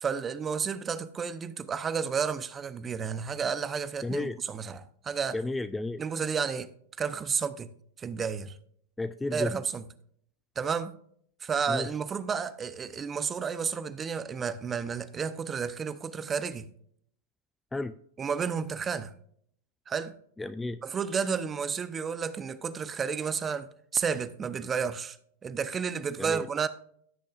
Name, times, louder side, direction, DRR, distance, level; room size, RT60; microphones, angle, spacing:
voice 1, 0.0-5.4 6.0-6.7 7.0-7.7 8.0-8.6 9.3-9.9 10.6-11.0 11.4-16.7 18.2-19.1 19.9-20.2 20.8-25.2 25.4-26.7, right 6 dB, 20° right, 0.7 m, -31 dB
voice 2, 4.0-4.4 5.3-6.0 9.0-9.5 11.7-11.9 17.7-17.9 20.4-20.8 26.2-26.5, left 2 dB, 10° left, 0.3 m, -32 dB
15.5 x 6.4 x 2.5 m
hypercardioid pair, 110°, 0 cm